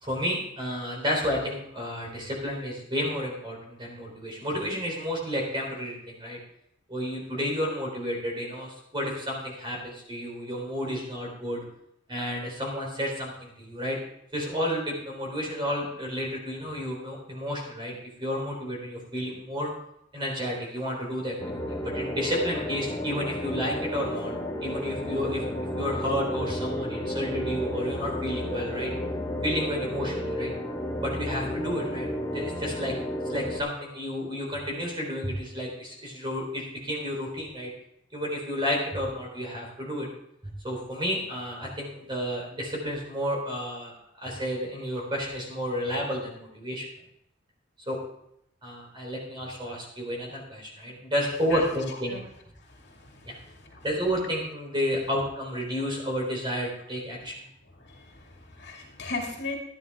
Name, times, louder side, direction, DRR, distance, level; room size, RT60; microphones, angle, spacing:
voice 1, 0.0-6.4 6.9-11.6 12.1-14.0 14.3-17.9 18.2-19.7 20.1-24.3 24.6-25.4 25.8-28.9 29.4-30.5 31.0-32.1 32.3-33.0 33.3-37.7 38.1-40.1 40.4-46.8 47.9-48.0 48.6-52.2 53.3-53.4 53.8-57.3, equal, 25° right, -1 dB, 4.0 m, -31 dB
sound 1, 21.4-33.6, equal, 15° left, 1.3 m, -32 dB
voice 2, 52.7-53.8 57.8-59.6, left 3 dB, 60° left, -1 dB, 2.4 m, -38 dB
13.5 x 10.5 x 3.7 m, 0.75 s
head